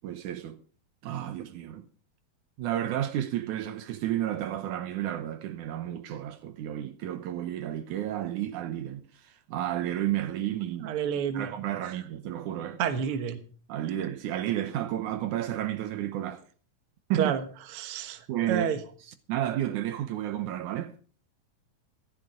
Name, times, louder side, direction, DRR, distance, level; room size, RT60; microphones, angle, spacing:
voice 1, 0.0-0.6 1.0-1.9 2.6-11.0 11.3-12.8 13.7-16.4 17.1-17.3 18.3-18.7 19.0-20.9, right 12 dB, 75° right, 2.2 m, -32 dB
voice 2, 10.8-11.5 12.8-13.4 17.2-17.4 17.7-18.2 18.5-18.8, right 8 dB, 55° right, 1.8 m, -28 dB
14.5 x 12.5 x 5.0 m
omnidirectional pair, 3.7 m